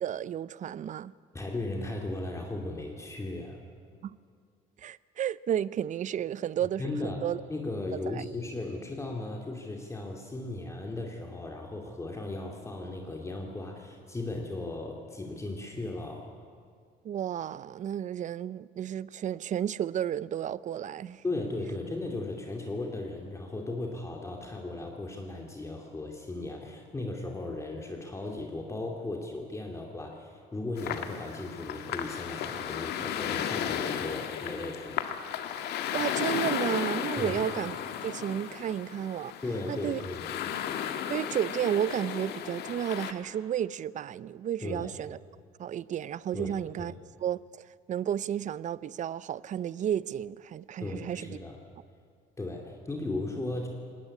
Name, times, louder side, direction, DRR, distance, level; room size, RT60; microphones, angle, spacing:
voice 1, 0.0-1.1 4.0-4.1 4.8-7.4 7.9-8.2 17.0-21.2 35.9-39.3 39.7-40.0 41.1-45.2 45.6-46.9 47.2-47.6 47.9-51.4, right 10 dB, 45° right, 0.6 m, -32 dB
voice 2, 1.3-3.6 6.8-16.3 21.2-35.1 37.2-37.4 39.4-40.3 44.6-44.9 46.3-47.0 50.8-51.6 52.4-53.7, left 2 dB, 15° left, 2.5 m, -36 dB
sound 1, 30.8-43.1, left 9 dB, 75° left, 1.7 m, -34 dB
20.0 x 18.0 x 9.8 m
cardioid pair, 110°, 17 cm